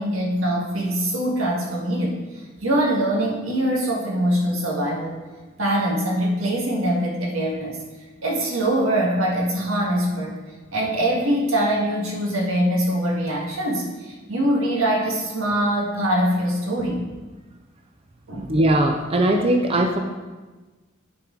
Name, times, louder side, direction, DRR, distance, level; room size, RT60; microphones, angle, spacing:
voice 1, 0.0-5.2 5.6-7.8 8.2-10.4 10.7-17.0 18.3-18.6, right 1 dB, 90° right, -2 dB, 1.7 m, -23 dB
voice 2, 18.5-20.0, right 1 dB, 30° right, 2 dB, 0.5 m, -19 dB
10.5 x 4.5 x 3.8 m, 1.3 s
head